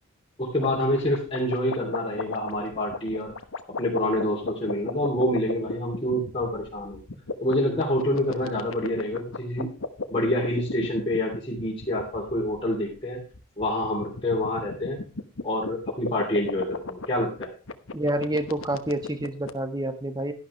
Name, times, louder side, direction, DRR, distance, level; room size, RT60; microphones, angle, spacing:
voice 1, 0.4-3.3 3.8-7.0 7.4-9.7 10.1-13.2 13.6-15.0 15.4-17.5, left 1 dB, 25° left, -5 dB, 3.2 m, -27 dB
sound 1, 0.6-19.5, left 3 dB, 65° left, 1.1 m, -35 dB
voice 2, 17.9-20.3, right 1 dB, 20° right, 8 dB, 1.4 m, -28 dB
12.0 x 11.5 x 3.2 m, 0.35 s
head